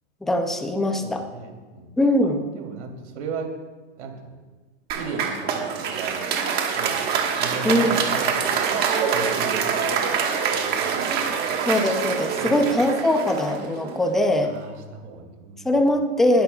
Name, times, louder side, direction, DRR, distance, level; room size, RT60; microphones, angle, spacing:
voice 1, 0.2-1.2 2.0-2.4 7.6-8.0 11.7-14.6 15.6-16.4, left 1 dB, ahead, 4 dB, 0.4 m, -21 dB
voice 2, 1.0-1.9 2.2-3.5 4.0-4.4 4.9-6.2 6.8-7.0 7.3-8.8 9.1-10.1 10.5-11.6 12.4-12.6 14.4-15.7, right 4 dB, 75° right, 2 dB, 3.0 m, -36 dB
Applause, 4.9-14.2, right 6 dB, 30° right, 1.4 m, -25 dB
20.0 x 11.0 x 2.3 m, 1.3 s
supercardioid pair, 155°, 34 cm